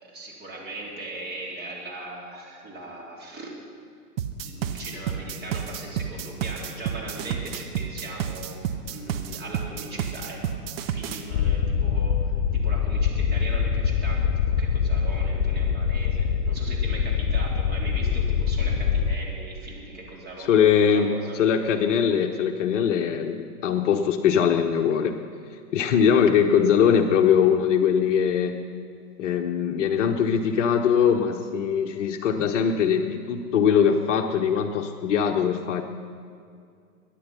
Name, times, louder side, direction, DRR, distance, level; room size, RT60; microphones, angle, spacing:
voice 1, 0.0-3.5 4.4-14.3 14.6-21.4, right 2 dB, 20° right, -3 dB, 3.6 m, -39 dB
sound 1, 4.2-11.2, right 8 dB, 40° right, 1.0 m, -30 dB
sound 2, 11.3-19.1, left 7 dB, 25° left, 0.4 m, -24 dB
voice 2, 20.5-25.2 25.7-28.6 29.2-35.8, left 7 dB, 50° left, 5 dB, 1.0 m, -21 dB
22.0 x 10.0 x 5.7 m, 2.3 s
hypercardioid pair, 125°, 46 cm